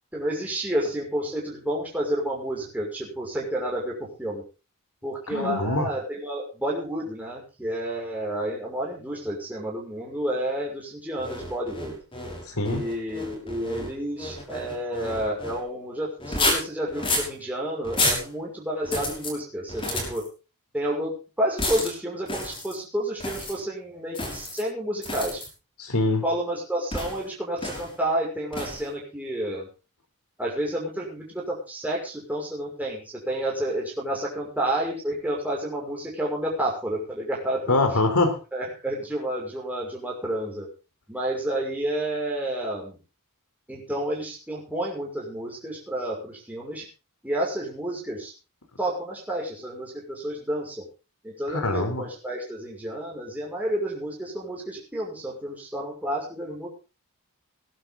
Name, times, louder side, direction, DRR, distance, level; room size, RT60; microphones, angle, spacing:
voice 1, 0.1-3.9 4.2-4.4 5.0-12.0 12.6-20.2 20.7-25.4 26.2-29.7 30.4-37.8 38.5-40.7 41.1-43.0 43.7-46.8 47.2-48.3 48.8-50.8 51.2-56.7, right 1 dB, 5° right, -3 dB, 6.0 m, -30 dB
voice 2, 5.3-5.9 12.5-12.8 25.8-26.2 37.7-38.4 51.5-52.0, left 2 dB, 80° left, 7 dB, 3.7 m, -24 dB
sound 1, 11.2-15.6 16.2-17.3 17.8-18.3 18.8-19.3 19.7-20.3 21.6-21.9 22.3-22.8 23.2-23.6 24.1-24.6 25.0-25.5 26.9-27.2 27.6-27.9 28.5-28.9, left 2 dB, 25° left, 5.8 m, -30 dB
20.5 x 11.5 x 3.9 m, 0.32 s
head